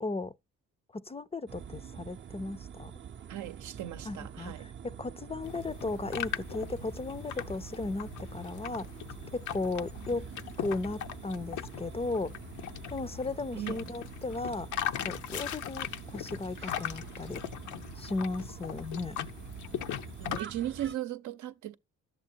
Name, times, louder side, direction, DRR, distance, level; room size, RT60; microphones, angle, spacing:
voice 1, 0.0-0.3 0.9-2.9 4.0-8.9 9.3-10.3 10.6-12.3 12.9-14.7 15.0-17.4 18.0-19.2, left 3 dB, 20° left, 0.5 m, -36 dB
sound 1, 1.5-20.9, right 8 dB, 40° right, 0.6 m, -46 dB
voice 2, 3.3-4.7 13.5-13.9 20.2-21.7, right 12 dB, 75° right, 0.7 m, -37 dB
sound 2, 5.4-20.4, left 11 dB, 75° left, 0.7 m, -40 dB
11.0 x 7.5 x 4.4 m
cardioid pair, 90°, 30 cm